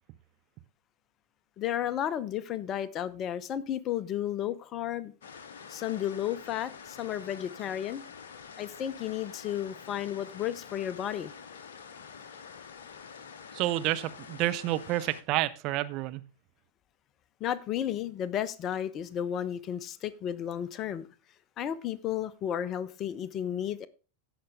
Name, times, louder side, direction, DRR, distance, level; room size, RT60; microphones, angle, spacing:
voice 1, 1.6-5.1 5.7-8.0 8.6-11.3 17.4-21.1 21.6-23.9, left 10 dB, 30° left, 0.7 m, -33 dB
sound 1, 5.2-15.2, left 6 dB, 60° left, 0.8 m, -47 dB
voice 2, 13.5-16.2, right 16 dB, 40° right, 0.7 m, -29 dB
16.0 x 5.6 x 3.5 m
figure-of-eight pair, 90°, 0 cm